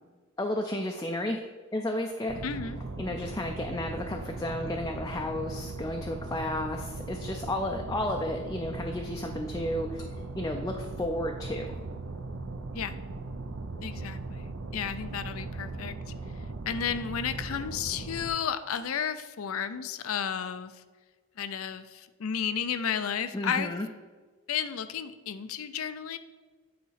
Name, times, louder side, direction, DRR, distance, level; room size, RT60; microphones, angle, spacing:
voice 1, 0.4-1.4 1.7-2.4 3.0-11.7 23.3-23.9, left 1 dB, 15° left, 2 dB, 0.4 m, -32 dB
sound 1, 2.3-18.3, right 3 dB, 75° right, 0.7 m, -38 dB
voice 2, 2.4-2.8 12.7-13.0 13.8-16.0 16.7-20.8 21.4-23.7 24.5-26.2, left 7 dB, 80° left, 12 dB, 0.5 m, -33 dB
8.6 x 4.0 x 5.7 m, 1.4 s
head